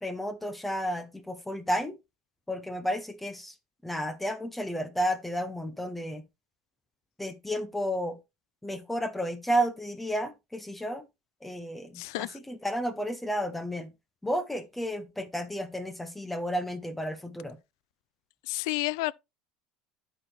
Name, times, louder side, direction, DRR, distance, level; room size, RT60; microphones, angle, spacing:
voice 1, 0.0-2.0 2.5-3.6 3.8-6.3 7.2-8.2 8.6-11.1 11.4-13.9 14.2-17.6, equal, 5° left, 0.6 m, -32 dB
voice 2, 11.9-12.4 18.4-19.1, left 20 dB, 90° left, 0.3 m, -30 dB
12.0 x 4.3 x 3.2 m
cardioid pair, 145°, 2 cm